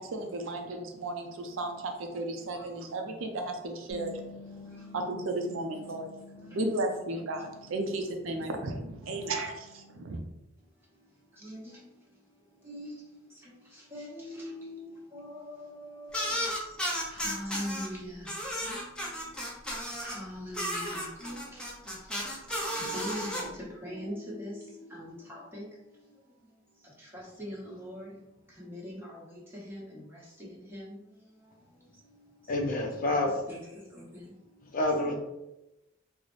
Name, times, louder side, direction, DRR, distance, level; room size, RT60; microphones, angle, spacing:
voice 1, 0.0-4.4 4.9-6.2 6.5-10.2, right 2 dB, 70° right, 4 dB, 0.5 m, -34 dB
voice 2, 2.5-3.0 3.8-4.1 4.4-5.1 5.4-6.6 7.8-7.9 8.2-8.5 9.0-9.3 10.6-32.5 33.2-34.8 35.0-35.2, equal, 10° right, -6 dB, 1.1 m, -44 dB
Bass guitar, 3.9-10.1, left 3 dB, 35° right, 0.9 m, -51 dB
sound 1, 16.1-17.9 18.2-20.2 20.5-23.4, equal, 5° left, 0.6 m, -33 dB
voice 3, 32.5-33.3 34.7-35.2, left 2 dB, 45° left, 1 dB, 0.5 m, -27 dB
3.9 x 2.1 x 3.1 m, 0.94 s
head